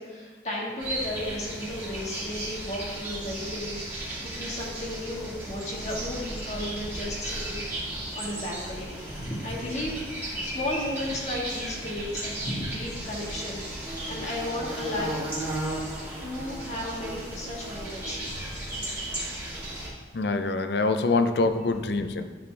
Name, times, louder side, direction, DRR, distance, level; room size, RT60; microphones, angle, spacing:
voice 1, 0.0-15.2 16.2-18.4 19.7-19.8, left 1 dB, 40° left, -3 dB, 1.6 m, -34 dB
sound 1, 0.8-19.9, right 1 dB, 15° right, 2.2 m, -35 dB
voice 2, 20.1-22.3, left 3 dB, 70° left, 8 dB, 0.5 m, -25 dB
11.0 x 4.2 x 3.3 m, 1.4 s
head